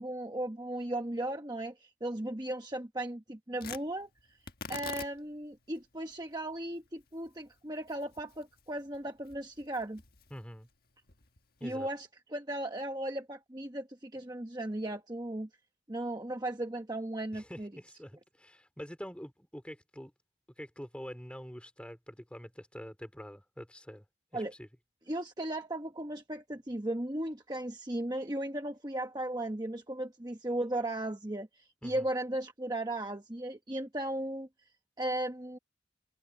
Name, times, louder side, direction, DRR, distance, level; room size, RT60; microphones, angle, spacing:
voice 1, 0.0-4.1 4.7-10.0 11.6-15.5 15.9-17.7 24.3-24.5 25.1-34.5 35.0-35.6, right 1 dB, 20° right, 1.1 m, -36 dB
Tearing, 3.6-11.9, left 5 dB, 50° left, 1.6 m, -49 dB
voice 2, 10.3-10.7 11.6-11.9 17.3-20.1 20.6-24.0 24.3-24.7 31.8-32.1, equal, 5° left, 3.2 m, -46 dB
head